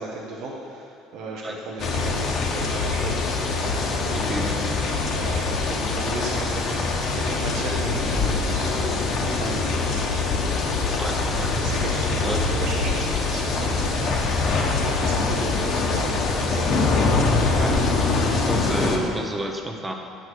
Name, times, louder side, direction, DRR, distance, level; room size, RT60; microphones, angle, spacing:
voice 1, 0.0-3.6 4.0-9.0 9.3-10.1 11.6-14.5 14.8-16.8, right 2 dB, 65° right, -3 dB, 1.1 m, -35 dB
sound 1, 1.8-19.0, left 3 dB, 50° left, 1.1 m, -24 dB
voice 2, 4.1-4.8 11.0-11.5 12.2-12.5 17.5-17.8 18.2-19.9, right 1 dB, 15° right, 3 dB, 0.9 m, -30 dB
sound 2, 8.1-8.8 9.0-9.7 10.0-10.1 10.4-10.6 10.9-11.7 12.0-12.9, left 4 dB, 15° left, 1.0 m, -32 dB
9.6 x 6.5 x 4.7 m, 2.5 s
cardioid pair, 120°, 0 cm